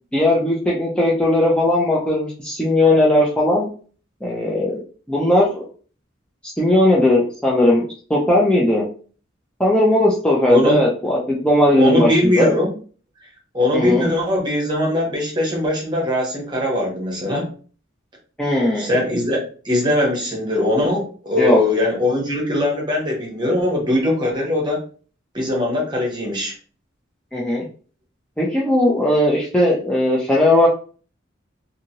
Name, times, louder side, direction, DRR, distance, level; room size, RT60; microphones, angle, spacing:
voice 1, 0.1-3.7 4.2-4.8 5.1-5.6 6.4-7.8 8.1-8.8 9.6-12.5 13.7-14.1 18.4-18.9 21.4-21.6 27.3-27.7 28.4-30.7, left 1 dB, 5° left, -5 dB, 0.5 m, -17 dB
voice 2, 10.5-10.8 11.8-12.7 13.5-17.4 18.7-19.4 19.6-24.8 25.3-26.5, left 1 dB, 20° right, -2 dB, 1.0 m, -20 dB
2.8 x 2.6 x 2.8 m, 0.41 s
head